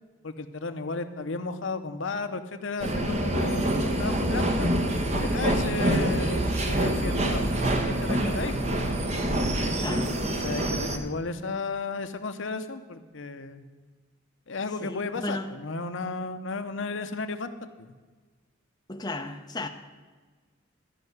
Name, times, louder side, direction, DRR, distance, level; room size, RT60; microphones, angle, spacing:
voice 1, 0.2-4.7 5.2-7.6 7.9-8.6 9.6-9.8 10.2-13.6 14.5-17.5, left 3 dB, 65° left, 0.8 m, -34 dB
sound 1, 2.8-11.0, right 1 dB, 30° right, 1.1 m, -26 dB
voice 2, 9.8-10.1 10.6-10.8 14.8-15.5 18.9-19.7, left 2 dB, 20° left, 0.7 m, -35 dB
13.0 x 5.5 x 9.4 m
head